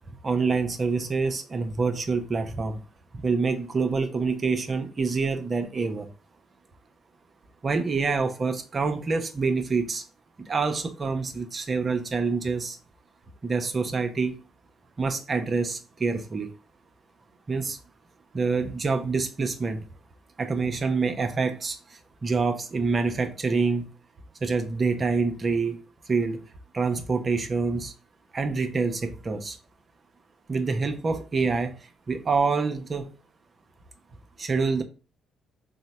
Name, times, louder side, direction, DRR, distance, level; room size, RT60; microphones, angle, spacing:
voice 1, 0.2-2.8 3.2-6.1 7.6-10.0 10.5-12.8 13.4-14.4 15.0-16.5 17.5-17.8 18.3-19.9 20.4-23.9 24.4-26.4 26.7-27.9 28.3-29.6 30.5-31.7 32.1-33.1 34.4-34.8, right 4 dB, 40° right, 0.7 m, -26 dB
3.7 x 2.1 x 4.2 m
hypercardioid pair, 50°, 0 cm